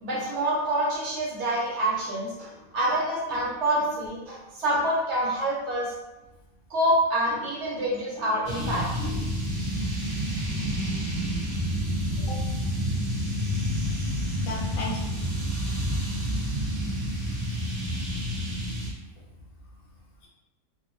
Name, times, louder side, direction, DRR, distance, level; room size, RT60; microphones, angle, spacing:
voice 1, 0.0-5.9 6.7-9.1, right 1 dB, 65° right, -4 dB, 0.9 m, -27 dB
sound 1, 8.4-18.9, equal, 40° right, 0.4 m, -29 dB
voice 2, 9.0-9.4 12.2-12.4 14.5-15.0, left 3 dB, 75° left, -3 dB, 1.1 m, -36 dB
2.8 x 2.2 x 2.5 m, 1.0 s
omnidirectional pair, 1.4 m